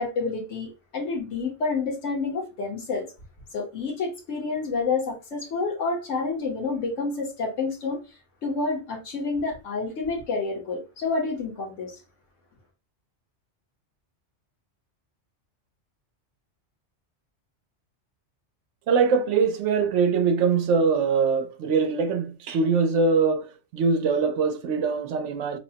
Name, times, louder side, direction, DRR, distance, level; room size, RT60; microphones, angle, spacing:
voice 1, 0.0-3.1 3.5-8.0 8.4-11.9, left 4 dB, 85° left, 1.4 m, -29 dB
voice 2, 18.9-25.6, right 5 dB, 80° right, 1.0 m, -23 dB
5.8 x 2.1 x 2.7 m
omnidirectional pair, 1.2 m